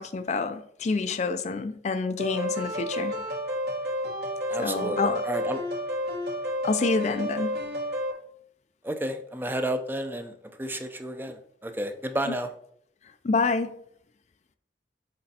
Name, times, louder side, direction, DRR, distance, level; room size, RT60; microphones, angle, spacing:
voice 1, 0.0-3.1 4.6-5.3 6.6-7.6 12.3-12.4 13.2-13.8, left 4 dB, 40° left, 0.4 m, -27 dB
sound 1, 2.2-8.1, equal, 65° right, 1.9 m, -31 dB
voice 2, 4.5-5.6 8.8-10.3 10.6-12.5, right 1 dB, 10° right, 0.5 m, -31 dB
6.5 x 4.3 x 4.1 m
head